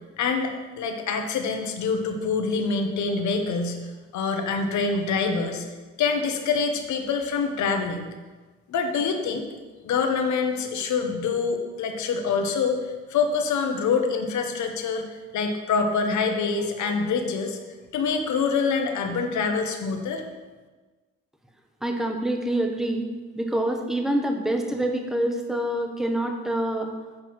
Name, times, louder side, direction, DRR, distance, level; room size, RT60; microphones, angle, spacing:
voice 1, 0.2-3.8 4.1-5.6 6.0-8.1 8.7-9.5 9.8-15.0 15.3-20.2, left 5 dB, 70° left, 5 dB, 1.1 m, -25 dB
voice 2, 21.8-23.1 23.3-26.9, right 1 dB, ahead, 3 dB, 1.0 m, -26 dB
7.7 x 4.6 x 6.0 m, 1.3 s
cardioid pair, 90°, 30 cm